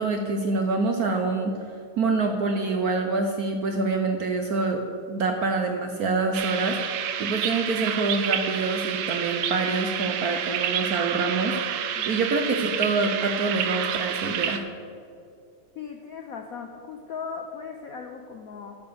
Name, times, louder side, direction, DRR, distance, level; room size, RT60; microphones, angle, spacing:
voice 1, 0.0-1.5 2.0-4.8 5.1-6.8 7.2-11.6 12.1-14.6, right 3 dB, 65° right, 4 dB, 0.9 m, -26 dB
sound 1, 6.3-14.6, right 9 dB, 85° right, 1.6 m, -29 dB
voice 2, 15.7-18.8, left 6 dB, 70° left, 4 dB, 0.8 m, -38 dB
10.0 x 6.8 x 6.9 m, 2.5 s
omnidirectional pair, 2.3 m